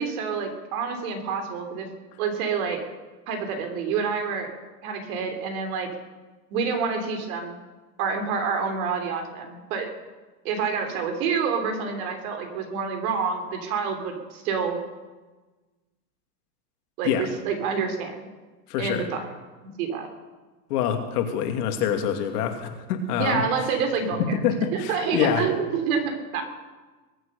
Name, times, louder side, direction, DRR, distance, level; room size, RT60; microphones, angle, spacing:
voice 1, 0.0-1.9 2.2-2.8 3.3-4.5 4.8-5.9 6.5-7.6 8.0-9.9 10.4-14.8 17.0-18.1 18.8-19.3 19.8-20.1 23.2-24.2 24.7-26.4, right 5 dB, 60° right, 5 dB, 3.4 m, -27 dB
voice 2, 18.7-19.0 20.7-23.4 24.2-25.4, left 8 dB, 70° left, 5 dB, 2.5 m, -25 dB
21.5 x 7.9 x 6.7 m, 1.2 s
supercardioid pair, 125°, 48 cm